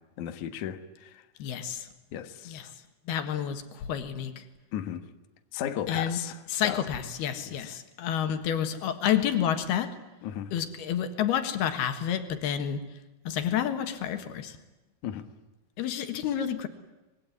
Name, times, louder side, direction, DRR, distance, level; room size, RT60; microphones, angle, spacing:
voice 1, 0.2-1.2 2.1-2.7 4.7-5.0 5.5-6.4 6.6-6.8 7.5-7.7 10.2-10.5 15.0-15.3, left 10 dB, 60° left, 2.6 m, -35 dB
voice 2, 1.4-1.9 2.5-2.7 3.1-4.4 5.9-6.2 6.5-10.0 10.5-12.8 13.3-14.6 15.8-16.7, left 9 dB, 85° left, 3.6 m, -29 dB
26.0 x 22.0 x 9.7 m
omnidirectional pair, 4.4 m